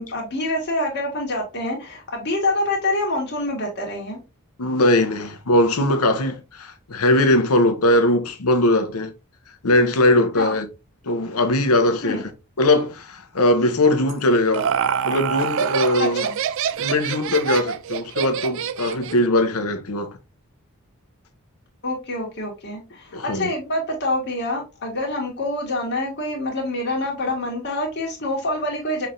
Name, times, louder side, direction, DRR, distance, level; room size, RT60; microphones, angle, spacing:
voice 1, 0.0-4.2 10.4-10.5 12.0-12.3 16.0-16.4 21.8-29.1, left 1 dB, 50° left, 1.7 m, -26 dB
voice 2, 4.6-9.1 9.6-10.6 11.0-12.2 12.6-14.7 15.0-16.2 16.8-20.1 23.1-23.5, left 1 dB, 85° left, 0.8 m, -20 dB
Laughter, 14.1-19.3, right 7 dB, 60° right, 0.4 m, -25 dB
5.8 x 3.3 x 2.6 m
head